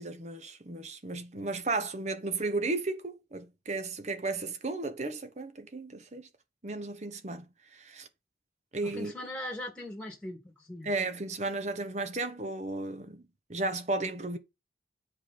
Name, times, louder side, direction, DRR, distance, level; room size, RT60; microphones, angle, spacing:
voice 1, 0.0-6.3 6.6-8.1 8.7-9.1 10.8-13.2 13.5-14.4, right 3 dB, 40° right, 1.0 m, -34 dB
voice 2, 8.8-10.9, left 1 dB, 5° left, 2.4 m, -40 dB
8.2 x 5.3 x 4.2 m
head